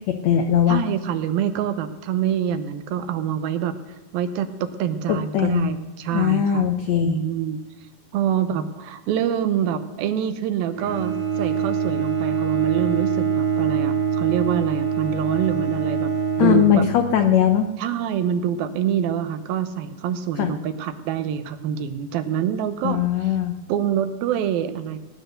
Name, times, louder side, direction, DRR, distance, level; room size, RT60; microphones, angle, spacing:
voice 1, 0.1-0.8 5.1-5.7 6.1-7.2 16.4-17.7 20.4-20.5 22.8-23.6, left 9 dB, 90° left, 6 dB, 1.5 m, -20 dB
voice 2, 0.7-3.7 4.1-6.7 7.0-7.6 8.1-16.9 17.8-23.3 23.7-25.0, right 9 dB, 80° right, 9 dB, 2.7 m, -26 dB
Bowed string instrument, 10.7-17.4, right 7 dB, 50° right, 2.5 m, -24 dB
18.5 x 10.0 x 6.6 m, 1.2 s
omnidirectional pair, 4.3 m